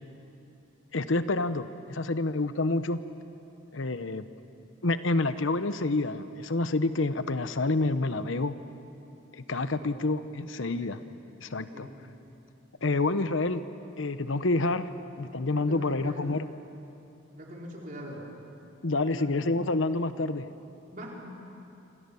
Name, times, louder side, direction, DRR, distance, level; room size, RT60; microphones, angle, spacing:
voice 1, 0.9-3.0 3.7-4.2 4.8-8.6 9.3-11.0 11.4-11.9 12.8-13.6 14.0-14.9 15.2-16.5 18.8-20.5, left 2 dB, 75° left, 11 dB, 0.9 m, -28 dB
voice 2, 10.6-11.0 11.7-12.1 15.6-16.2 17.3-18.2 19.0-19.3 20.9-21.3, equal, 40° right, -2 dB, 4.5 m, -43 dB
27.5 x 27.0 x 7.1 m, 2.8 s
head